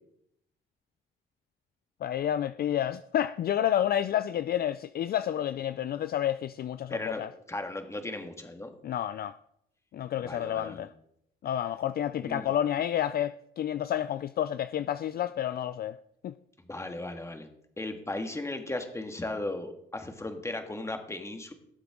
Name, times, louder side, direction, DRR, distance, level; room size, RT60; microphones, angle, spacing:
voice 1, 2.0-7.3 8.8-9.4 9.9-10.9 11.4-16.0 16.2-16.3, left 11 dB, 50° left, 0.4 m, -30 dB
voice 2, 6.9-8.7 10.2-10.9 12.2-12.5 16.7-17.5 17.8-21.5, left 2 dB, 15° left, 1.7 m, -36 dB
18.5 x 7.7 x 3.7 m
cardioid pair, 90°, 20 cm